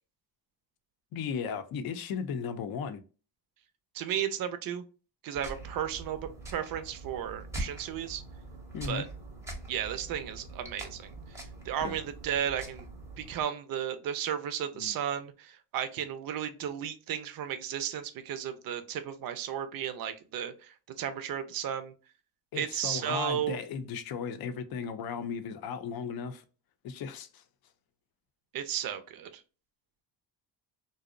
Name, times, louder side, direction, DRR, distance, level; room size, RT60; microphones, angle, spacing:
voice 1, 1.1-3.0 8.7-9.1 11.8-12.0 14.7-15.0 22.5-26.4 26.8-27.4, left 6 dB, 55° left, 0.5 m, -36 dB
voice 2, 3.9-4.8 5.2-8.2 8.8-9.1 9.7-11.1 11.7-12.9 13.2-21.9 22.5-23.6 28.5-29.4, right 9 dB, 50° right, 0.5 m, -34 dB
sound 1, 5.4-13.4, right 2 dB, 5° right, 0.6 m, -43 dB
2.6 x 2.0 x 2.4 m
cardioid pair, 95°, 45 cm